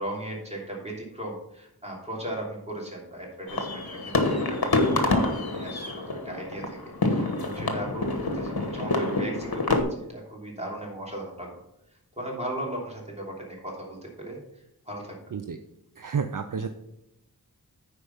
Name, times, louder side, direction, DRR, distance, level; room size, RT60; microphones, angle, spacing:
voice 1, 0.0-6.8 7.0-11.5 12.2-14.4 14.9-15.2, right 1 dB, 15° right, -2 dB, 3.0 m, -37 dB
sound 1, 3.5-9.8, left 2 dB, 70° left, 1.3 m, -27 dB
voice 2, 16.0-16.7, right 6 dB, 55° right, 8 dB, 0.6 m, -30 dB
9.9 x 4.8 x 5.6 m, 0.84 s
wide cardioid pair, 55°, 38 cm